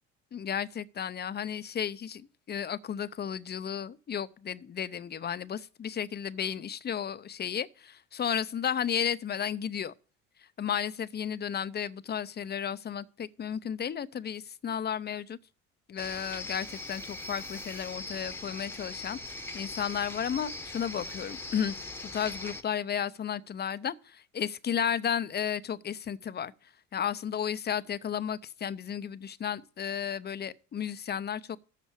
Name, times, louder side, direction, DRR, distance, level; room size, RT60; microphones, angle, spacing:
voice 1, 0.3-9.9 10.6-15.4 15.9-26.5 26.9-31.6, left 8 dB, 25° left, 0.6 m, -33 dB
sound 1, 16.0-22.6, left 2 dB, 5° left, 0.9 m, -41 dB
7.5 x 6.0 x 7.2 m
hypercardioid pair, 60°, 38 cm